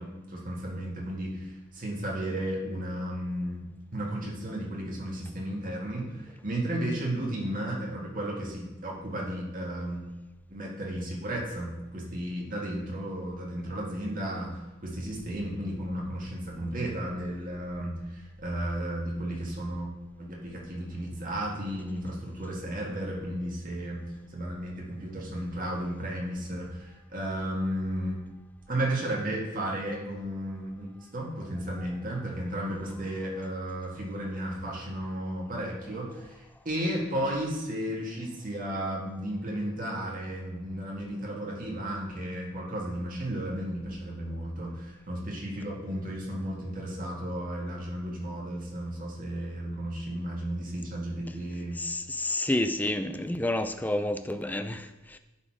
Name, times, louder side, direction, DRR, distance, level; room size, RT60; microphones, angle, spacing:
voice 1, 0.0-3.6 3.9-10.1 10.5-19.9 20.2-24.0 24.3-28.2 28.7-51.8, right 1 dB, 40° right, 1.9 m, -34 dB
voice 2, 51.8-55.2, left 1 dB, 10° left, 0.3 m, -30 dB
10.5 x 4.1 x 4.7 m
head